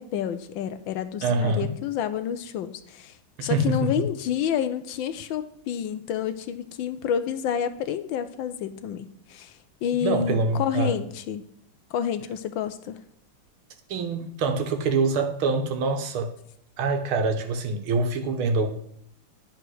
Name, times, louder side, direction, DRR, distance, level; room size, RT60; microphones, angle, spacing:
voice 1, 0.0-9.5 9.8-11.5 11.9-13.0, left 9 dB, 75° left, 11 dB, 1.3 m, -29 dB
voice 2, 1.2-1.7 3.4-4.1 10.0-11.0 13.9-16.3 16.8-18.7, right 3 dB, 75° right, 6 dB, 1.9 m, -25 dB
10.5 x 4.9 x 6.2 m, 0.69 s
omnidirectional pair, 2.4 m